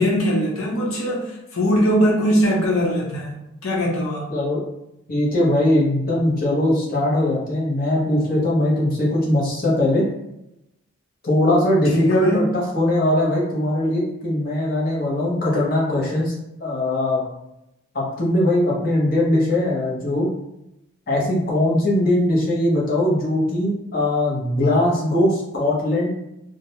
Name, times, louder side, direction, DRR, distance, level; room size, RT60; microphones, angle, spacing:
voice 1, 0.0-4.3 11.9-12.5, equal, 85° left, -3 dB, 0.7 m, -21 dB
voice 2, 4.3-4.6 5.1-10.0 11.2-16.3 16.6-17.2 17.9-20.3 21.1-26.1, left 1 dB, 45° left, -5 dB, 0.8 m, -20 dB
2.4 x 2.0 x 2.8 m, 0.86 s
head